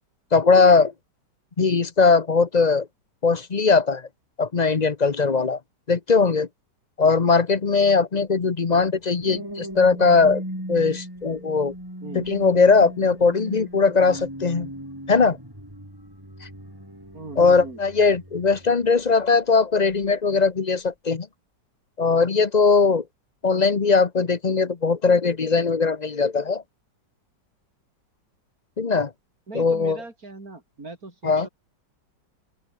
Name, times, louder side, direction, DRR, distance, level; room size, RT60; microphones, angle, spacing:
voice 1, 0.3-0.9 1.6-2.9 3.2-4.0 4.4-5.6 5.9-6.5 7.0-10.4 10.7-11.7 12.1-14.7 15.1-15.4 17.4-21.3 22.0-23.0 23.4-26.6 28.8-29.1 29.5-30.0 31.2-31.5, left 4 dB, 30° left, 0.8 m, -19 dB
sound 1, 9.0-19.3 19.8-20.1, equal, 10° right, 7.7 m, -38 dB
voice 2, 17.1-17.8 29.5-31.5, right 3 dB, 55° right, 5.1 m, -39 dB
open air
omnidirectional pair, 1.9 m